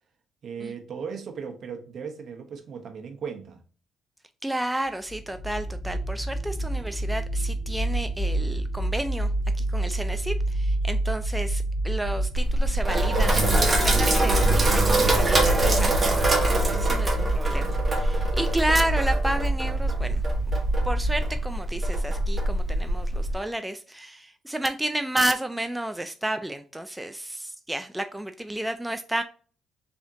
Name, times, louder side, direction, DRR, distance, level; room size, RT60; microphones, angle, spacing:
voice 1, 0.4-3.6, right 6 dB, 60° right, 0.9 m, -37 dB
voice 2, 4.4-9.3 9.6-20.2 20.8-29.2, right 1 dB, 5° right, 0.3 m, -31 dB
sound 1, 5.1-21.4, right 1 dB, 60° left, 0.7 m, -28 dB
Sink (filling or washing), 12.3-23.3, right 1 dB, 25° right, 1.4 m, -24 dB
3.5 x 3.5 x 2.7 m
cardioid pair, 90°, 0 cm